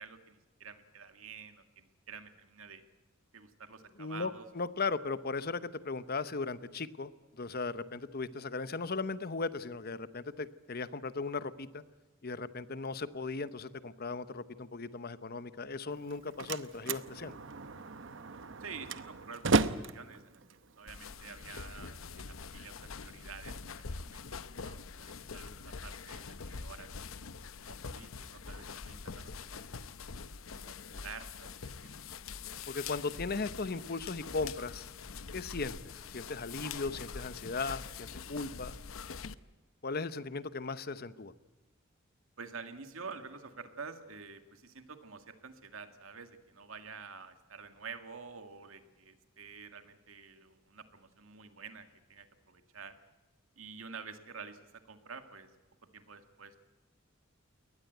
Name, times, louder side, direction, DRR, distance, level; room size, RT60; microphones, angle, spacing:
voice 1, 0.0-2.8 3.3-4.5 18.6-19.7 19.9-20.4 20.8-26.9 27.6-29.6 30.5-32.1 42.4-53.0 53.6-55.5 55.9-56.6, right 5 dB, 90° right, 7 dB, 2.1 m, -49 dB
voice 2, 4.0-7.1 7.4-11.8 12.2-17.4 25.3-25.6 32.7-34.9 35.3-38.7 39.8-41.3, left 4 dB, 50° left, 14 dB, 0.9 m, -37 dB
Slam, 15.9-21.9, right 4 dB, 65° right, 0.9 m, -35 dB
sound 1, 20.9-39.3, left 5 dB, 80° left, 0.8 m, -44 dB
22.5 x 19.0 x 8.0 m, 1.2 s
head